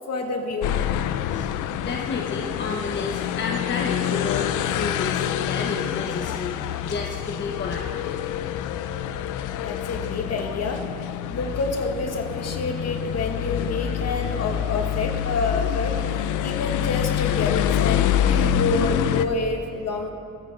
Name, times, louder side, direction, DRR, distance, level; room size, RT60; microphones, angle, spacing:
voice 1, 0.1-0.8 9.6-10.9 11.3-20.1, left 3 dB, 55° left, 2 dB, 2.1 m, -28 dB
sound 1, 0.6-19.3, left 10 dB, 90° left, 0.6 m, -26 dB
voice 2, 1.8-7.9, left 4 dB, 35° left, 0 dB, 1.1 m, -31 dB
23.5 x 9.7 x 3.9 m, 2.4 s
cardioid pair, 90°, 30 cm